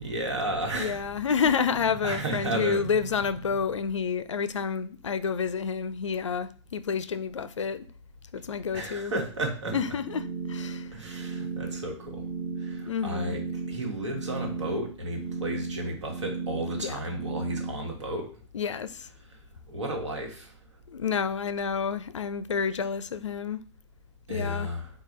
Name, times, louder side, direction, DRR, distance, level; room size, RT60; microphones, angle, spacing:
voice 1, 0.0-1.4 2.0-3.1 3.5-3.6 8.7-9.8 10.9-12.2 12.6-18.3 19.7-20.5 24.3-24.9, right 1 dB, 75° right, 1.3 m, -33 dB
voice 2, 0.8-7.9 8.3-9.1 9.7-10.9 12.8-13.4 16.7-17.0 18.5-19.1 20.9-23.6 24.3-24.7, left 6 dB, 75° left, 0.4 m, -29 dB
sound 1, 9.6-17.7, right 4 dB, 35° right, 0.6 m, -35 dB
4.6 x 2.3 x 4.1 m
figure-of-eight pair, 105°, 15 cm